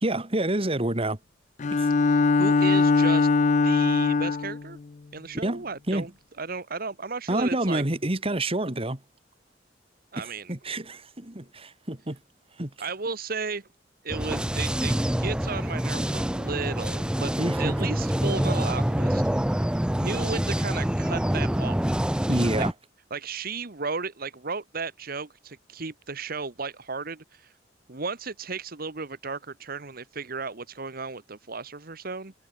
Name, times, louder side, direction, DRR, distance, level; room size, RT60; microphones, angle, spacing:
voice 1, 0.0-1.2 1.7-1.9 5.4-6.1 7.3-9.0 10.2-12.2 12.6-12.7 17.4-17.9 22.3-22.7, right 1 dB, 30° right, 2.3 m, -28 dB
Bowed string instrument, 1.6-4.6, left 4 dB, 40° left, 0.4 m, -21 dB
voice 2, 2.0-3.3 3.6-4.8 5.1-6.1 6.4-7.8 10.1-10.5 12.8-13.7 14.0-19.2 20.0-21.8 22.6-22.7 23.1-27.5 27.9-32.3, right 4 dB, 50° right, 1.4 m, -34 dB
sound 1, 14.1-22.7, equal, 5° right, 0.6 m, -26 dB
head